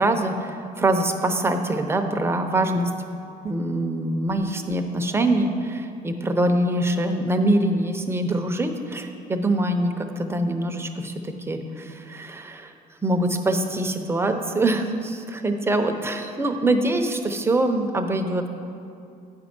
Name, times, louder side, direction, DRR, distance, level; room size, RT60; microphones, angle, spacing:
voice 1, 0.0-2.9 3.4-12.7 13.0-18.5, right 1 dB, 15° right, 5 dB, 0.7 m, -24 dB
8.8 x 5.3 x 6.0 m, 2.5 s
cardioid pair, 110°, 17 cm